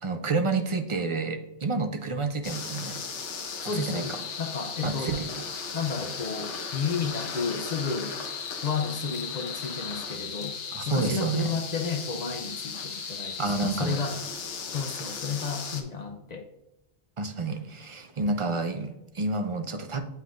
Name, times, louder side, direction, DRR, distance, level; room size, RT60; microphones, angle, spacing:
voice 1, 0.0-3.0 3.6-4.2 4.8-5.4 10.7-11.5 13.4-14.0 17.2-20.0, right 3 dB, 40° right, 7 dB, 0.4 m, -29 dB
sound 1, 2.4-15.8, left 5 dB, 80° left, 1.1 m, -36 dB
voice 2, 3.6-5.2 5.7-8.1 8.6-10.6 10.9-14.3 14.7-16.5, left 5 dB, 45° left, 5 dB, 0.6 m, -32 dB
7.7 x 5.5 x 2.5 m, 0.94 s
omnidirectional pair, 1.2 m